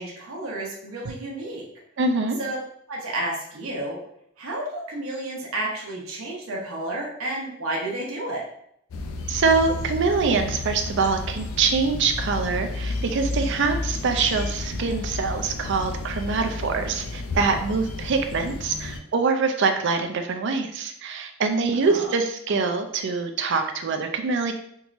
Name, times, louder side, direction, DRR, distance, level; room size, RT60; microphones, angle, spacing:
voice 1, 0.0-1.6 2.4-2.6 2.9-4.0 4.4-8.4 21.8-22.1, right 1 dB, 90° right, -2 dB, 0.8 m, -31 dB
voice 2, 2.0-2.4 9.3-24.5, right 4 dB, 60° right, 6 dB, 0.4 m, -24 dB
sound 1, 8.9-19.0, left 2 dB, 80° left, 0.4 m, -32 dB
3.7 x 2.9 x 2.5 m, 0.73 s
head